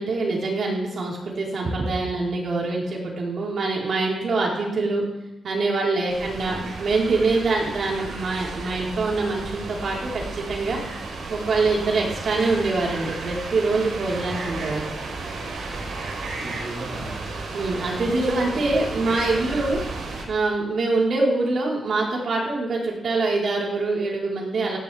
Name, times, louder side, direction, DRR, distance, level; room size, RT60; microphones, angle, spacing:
voice 1, 0.0-5.1 5.4-10.8 11.3-14.9 17.5-19.8 20.3-24.8, right 3 dB, 60° right, -3 dB, 5.3 m, -24 dB
sound 1, 6.1-20.2, right 3 dB, 85° right, 5.4 m, -33 dB
voice 2, 6.2-6.6 14.1-14.5 15.7-17.3, right 2 dB, 40° right, -6 dB, 4.1 m, -39 dB
19.0 x 15.5 x 3.9 m, 0.91 s
wide cardioid pair, 145°, 0 cm